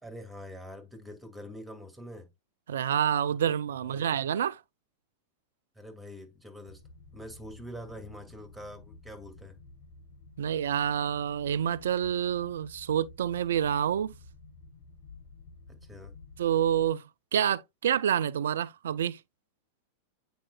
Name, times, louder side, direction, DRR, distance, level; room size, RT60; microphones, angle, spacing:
voice 1, 0.0-2.3 3.8-4.1 5.7-6.8 7.1-9.6 15.7-16.1, equal, 5° right, 1.9 m, -45 dB
voice 2, 2.7-4.6 10.4-14.1 16.4-19.2, right 9 dB, 60° right, 0.3 m, -28 dB
sound 1, 6.7-16.9, left 3 dB, 70° left, 1.0 m, -52 dB
8.6 x 5.0 x 2.2 m
figure-of-eight pair, 90°, 0 cm